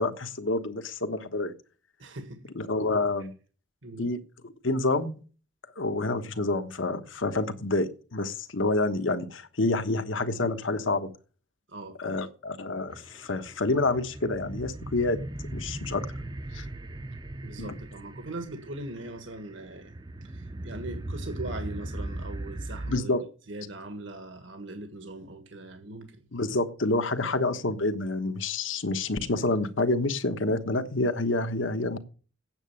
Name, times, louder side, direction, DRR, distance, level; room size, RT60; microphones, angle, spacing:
voice 1, 0.0-1.5 2.6-3.3 4.0-4.2 4.6-5.1 5.8-11.1 12.0-15.2 15.5-16.1 16.5-16.6 17.6-17.7 22.8-23.2 26.3-32.0, left 2 dB, 80° left, 1.2 m, -28 dB
voice 2, 2.0-2.5 3.8-4.1 11.7-12.2 17.4-19.9 20.2-23.1 23.5-26.3, right 2 dB, 80° right, 1.6 m, -40 dB
sound 1, 12.9-23.0, right 1 dB, 20° right, 0.5 m, -38 dB
9.0 x 7.6 x 8.8 m
head